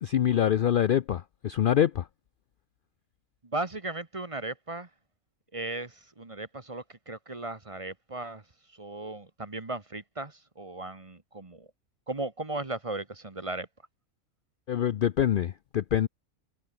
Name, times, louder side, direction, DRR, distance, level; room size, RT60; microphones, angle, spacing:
voice 1, 0.0-2.1 14.7-16.1, left 10 dB, 75° left, 0.4 m, -25 dB
voice 2, 3.4-4.9 5.5-11.7 12.1-13.7, right 2 dB, 25° right, 1.4 m, -36 dB
omnidirectional pair, 1.5 m